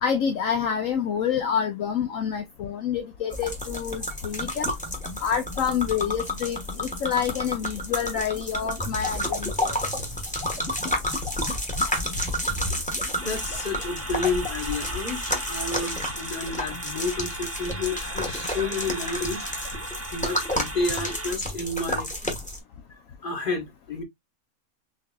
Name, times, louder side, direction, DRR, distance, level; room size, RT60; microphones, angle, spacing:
voice 1, 0.0-4.7 5.2-9.8, left 7 dB, 70° left, 1.0 m, -27 dB
sound 1, 3.3-22.6, left 1 dB, 5° left, 1.1 m, -31 dB
voice 2, 13.2-19.5 20.1-22.1 23.2-24.0, left 3 dB, 40° left, 1.6 m, -30 dB
sound 2, 13.2-21.3, right 2 dB, 25° right, 0.3 m, -37 dB
6.3 x 2.6 x 2.3 m
omnidirectional pair, 1.5 m